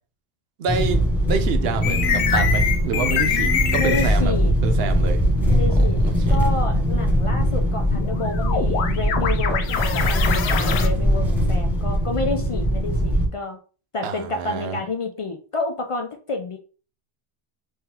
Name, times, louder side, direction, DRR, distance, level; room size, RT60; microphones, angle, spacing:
voice 1, 0.6-4.3 4.6-5.2 5.8-6.5 14.0-14.8, right 6 dB, 70° right, 0.8 m, -28 dB
sound 1, 0.7-13.3, equal, ahead, 1.0 m, -21 dB
sound 2, 1.8-4.2 7.9-10.9, left 7 dB, 80° left, 0.8 m, -24 dB
voice 2, 3.8-4.5 5.5-6.0 6.3-13.6 13.9-16.6, left 3 dB, 55° left, 0.3 m, -29 dB
3.7 x 3.1 x 2.8 m
omnidirectional pair, 1.1 m